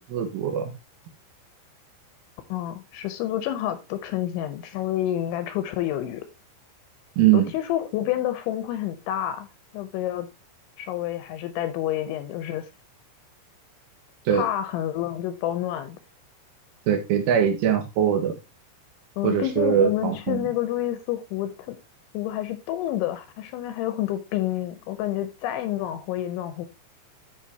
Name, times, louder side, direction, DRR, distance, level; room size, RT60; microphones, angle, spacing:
voice 1, 0.1-0.7 7.2-7.5 14.3-14.4 16.9-18.3 19.2-20.5, right 9 dB, 75° right, 3.8 m, -22 dB
voice 2, 2.5-6.3 7.3-9.5 9.7-10.3 10.8-12.7 14.3-16.0 19.2-21.8 22.1-26.7, left 12 dB, 80° left, 2.8 m, -29 dB
13.0 x 5.7 x 2.8 m
omnidirectional pair, 5.9 m